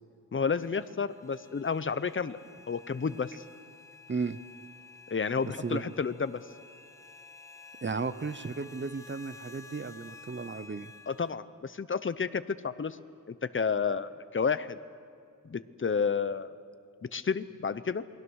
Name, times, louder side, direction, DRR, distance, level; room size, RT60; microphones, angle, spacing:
voice 1, 0.3-2.4 2.7-3.4 5.1-6.4 11.1-13.0 13.3-14.8 15.4-16.5 17.1-18.0, left 5 dB, 35° left, 14 dB, 0.8 m, -31 dB
sound 1, 0.5-11.4, left 3 dB, 10° left, 1.2 m, -52 dB
voice 2, 4.1-4.4 5.6-5.9 7.8-10.9, right 4 dB, 35° right, 13 dB, 0.7 m, -34 dB
28.0 x 21.5 x 6.4 m, 2.4 s
wide cardioid pair, 100°, 33 cm